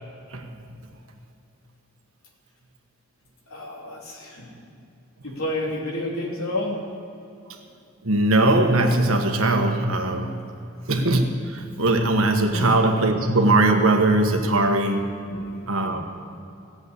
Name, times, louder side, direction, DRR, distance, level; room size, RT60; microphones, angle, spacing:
voice 1, 3.5-4.7 5.2-6.8 12.5-12.7 15.3-16.0, left 1 dB, 85° left, -2 dB, 3.2 m, -31 dB
voice 2, 8.0-10.4 10.9-15.2 15.7-16.0, right 2 dB, 80° right, 4 dB, 1.4 m, -20 dB
16.5 x 7.9 x 8.2 m, 2.7 s
head